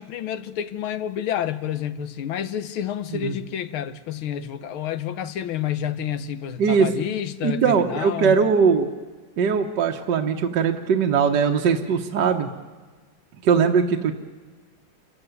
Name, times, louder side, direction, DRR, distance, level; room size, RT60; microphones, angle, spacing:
voice 1, 0.0-8.4, left 10 dB, 80° left, 1.8 m, -29 dB
voice 2, 6.6-6.9 7.4-8.9 9.4-12.5 13.4-14.1, right 6 dB, 60° right, 1.7 m, -20 dB
28.0 x 15.0 x 9.5 m
omnidirectional pair, 2.3 m